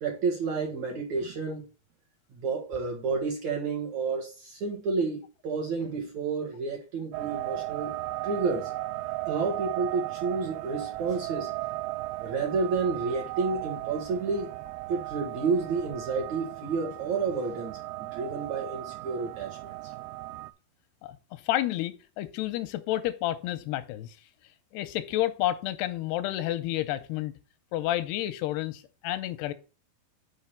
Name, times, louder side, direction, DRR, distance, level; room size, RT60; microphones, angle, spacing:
voice 1, 0.0-1.7 2.4-8.0 8.2-8.7 9.3-11.5 12.2-14.5 14.9-19.9, right 4 dB, 60° right, 2.0 m, -30 dB
sound 1, 7.1-20.5, right 18 dB, 85° right, 2.4 m, -36 dB
voice 2, 21.0-24.2 24.7-27.3 27.7-29.5, left 14 dB, 90° left, 2.6 m, -30 dB
6.7 x 4.7 x 5.5 m
omnidirectional pair, 4.6 m